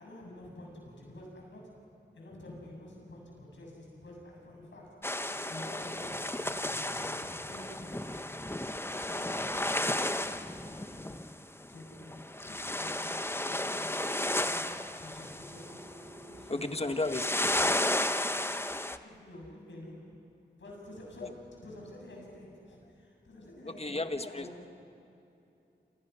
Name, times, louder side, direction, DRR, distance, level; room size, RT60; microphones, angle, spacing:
voice 1, 0.0-5.1 5.4-8.6 9.0-11.3 11.7-13.9 14.3-16.6 17.4-17.5 19.0-20.2 20.6-24.6, left 1 dB, 85° left, -1 dB, 7.3 m, -49 dB
sound 1, 5.0-11.4 11.6-11.7 11.9-16.5 16.8-19.0, left 1 dB, 10° left, 1.0 m, -33 dB
Telephone, 15.4-17.4, right 1 dB, 25° right, 2.9 m, -52 dB
voice 2, 16.3-17.6 21.2-21.3 23.7-24.5, left 2 dB, 35° left, 7 dB, 1.7 m, -34 dB
28.0 x 28.0 x 5.7 m, 2.7 s
cardioid pair, 40°, 19 cm